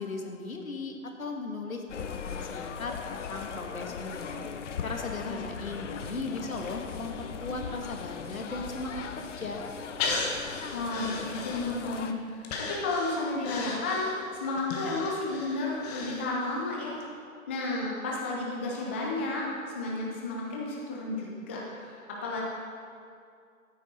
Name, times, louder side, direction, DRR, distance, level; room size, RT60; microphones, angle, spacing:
voice 1, 0.0-4.4 4.8-9.6, left 3 dB, 75° left, 3 dB, 1.7 m, -37 dB
sound 1, 1.9-12.1, left 6 dB, 60° left, 0.8 m, -39 dB
Breathing, 10.0-12.0 12.4-16.6 17.0-17.1, left 4 dB, 30° left, 1.3 m, -36 dB
voice 2, 10.7-14.1 14.4-17.0 17.5-19.4 19.7-22.4, left 2 dB, 10° left, -3 dB, 0.4 m, -32 dB
13.5 x 9.2 x 4.2 m, 2.4 s
figure-of-eight pair, 125°, 42 cm